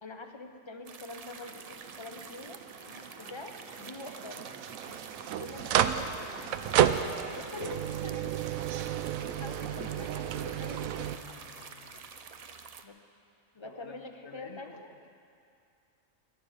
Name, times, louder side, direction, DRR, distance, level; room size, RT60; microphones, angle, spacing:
voice 1, 0.0-2.6 3.2-4.5 5.4-6.3 7.3-8.4 9.4-11.1 12.8-13.0 13.5-14.9, left 2 dB, 25° left, 5 dB, 0.7 m, -45 dB
sound 1, 0.9-12.8, right 5 dB, 50° right, 0.4 m, -48 dB
sound 2, 1.5-11.2, right 10 dB, 90° right, 1.0 m, -32 dB
sound 3, 2.7-12.0, left 4 dB, 45° left, 1.2 m, -55 dB
voice 2, 13.6-15.1, left 5 dB, 75° left, 3 dB, 1.2 m, -49 dB
21.0 x 11.0 x 5.0 m, 2.5 s
omnidirectional pair, 1.4 m